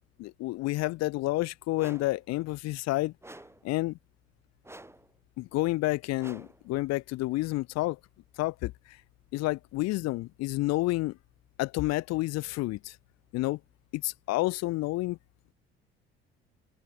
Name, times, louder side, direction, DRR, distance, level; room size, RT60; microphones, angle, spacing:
voice 1, 0.2-3.1 3.6-4.0 5.4-8.0 8.4-8.7 9.3-11.2 11.6-13.0 13.3-13.6 13.9-15.2, left 19 dB, 55° left, 3.7 m, -29 dB
sound 1, 1.8-2.2 3.2-3.7 4.6-5.1 6.2-6.7, right 1 dB, 10° right, 5.5 m, -49 dB
open air
figure-of-eight pair, 55°, 30 cm